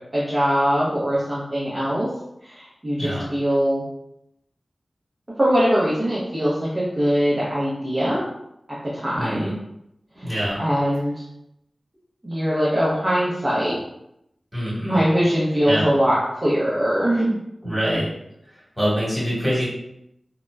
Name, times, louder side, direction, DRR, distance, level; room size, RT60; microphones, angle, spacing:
voice 1, 0.1-2.1 2.4-3.8 5.4-8.2 8.7-9.5 10.2-10.3 10.6-11.2 12.2-13.8 14.8-17.4, equal, 25° right, -8 dB, 0.6 m, -22 dB
voice 2, 9.1-9.5 10.2-10.6 14.5-15.0 15.7-15.8 17.6-18.1 18.8-19.7, equal, 10° right, -8 dB, 1.4 m, -24 dB
2.8 x 2.0 x 2.2 m, 0.81 s
wide cardioid pair, 95°, 0 cm